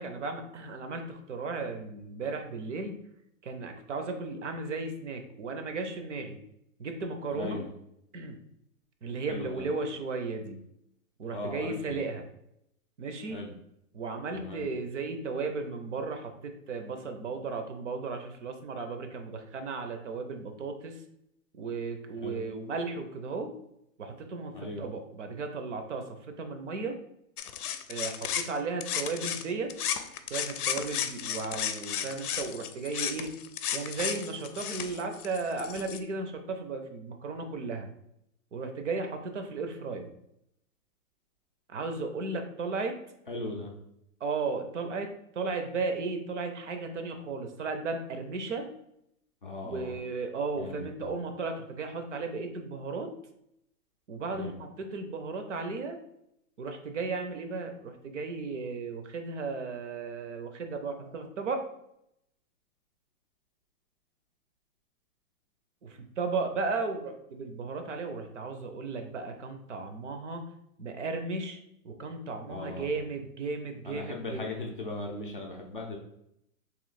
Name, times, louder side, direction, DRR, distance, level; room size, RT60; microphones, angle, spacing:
voice 1, 0.0-3.0 3.4-6.4 6.8-7.6 8.1-8.4 9.0-10.6 11.2-12.3 13.0-13.4 13.9-21.0 21.5-23.5 24.0-27.0 27.9-29.7 30.3-33.3 33.7-37.9 38.5-40.1 41.7-42.9 44.2-48.7 49.6-53.1 54.1-56.0 56.6-61.6 65.8-70.4 70.8-71.6 71.8-74.6, right 4 dB, 55° right, 6 dB, 0.6 m, -35 dB
voice 2, 7.3-7.7 9.3-9.6 11.3-12.0 13.3-13.5 14.3-14.7 22.2-22.4 24.5-24.9 43.3-43.7 49.4-50.0 50.6-51.1 54.3-54.6 72.5-73.1 73.9-76.0, left 2 dB, 40° left, -1 dB, 0.4 m, -38 dB
sound 1, 27.4-29.4 29.7-36.0, left 9 dB, 85° left, 0.6 m, -34 dB
3.1 x 2.8 x 3.9 m, 0.77 s
hypercardioid pair, 180°, 44 cm